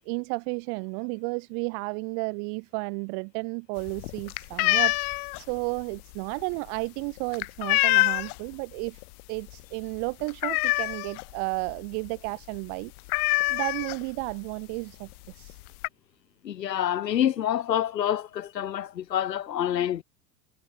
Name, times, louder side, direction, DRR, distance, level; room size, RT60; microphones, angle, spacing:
voice 1, 0.0-9.0 9.3-12.9 13.5-15.6, right 40 dB or more, 55° right, 1.6 m, -33 dB
sound 1, 3.8-8.5 8.9-9.2 9.5-9.6 9.9-11.3 11.7-11.8 12.1-12.3 12.5-12.6 13.1-14.3 15.1-15.2 15.5-15.9, left 25 dB, 60° left, 1.4 m, -26 dB
voice 2, 16.4-20.0, left 10 dB, 90° left, 1.0 m, -27 dB
hypercardioid pair, 80°, 48 cm